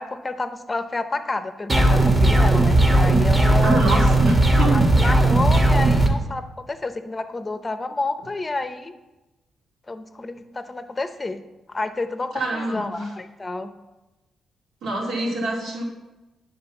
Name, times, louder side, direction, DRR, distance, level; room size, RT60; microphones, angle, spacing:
voice 1, 0.0-3.9 4.7-8.9 9.9-11.4 11.7-13.7, left 2 dB, 20° left, 10 dB, 0.6 m, -29 dB
sound 1, 1.7-6.1, right 2 dB, 15° right, 1.1 m, -17 dB
voice 2, 3.6-4.8 12.3-13.1 14.8-15.8, right 1 dB, 90° right, -3 dB, 2.4 m, -26 dB
9.6 x 3.7 x 7.0 m, 1.1 s
cardioid pair, 120°, 0 cm